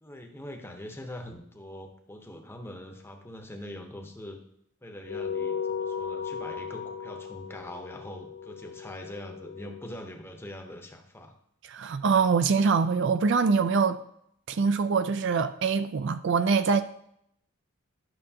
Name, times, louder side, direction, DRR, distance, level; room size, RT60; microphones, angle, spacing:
voice 1, 0.0-4.4 4.8-11.3, left 1 dB, 10° left, 0.8 m, -43 dB
sound 1, 5.0-9.8, left 6 dB, 70° left, 0.6 m, -36 dB
voice 2, 11.7-14.0 14.5-16.8, right 5 dB, 55° right, 0.4 m, -24 dB
11.0 x 6.3 x 2.8 m
head